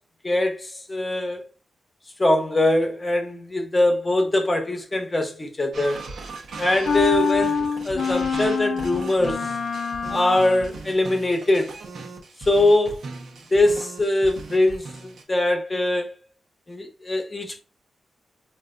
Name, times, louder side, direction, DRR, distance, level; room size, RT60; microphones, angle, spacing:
voice 1, 0.2-1.4 2.2-6.0 6.6-9.5 10.1-11.7 12.5-13.0 13.5-16.1 16.7-17.6, left 1 dB, 25° left, 0.8 m, -22 dB
sound 1, 5.7-15.2, right 3 dB, 80° right, 0.8 m, -38 dB
sound 2, 6.9-10.8, left 5 dB, 55° left, 0.4 m, -26 dB
3.4 x 2.5 x 2.4 m
cardioid pair, 85°, 0 cm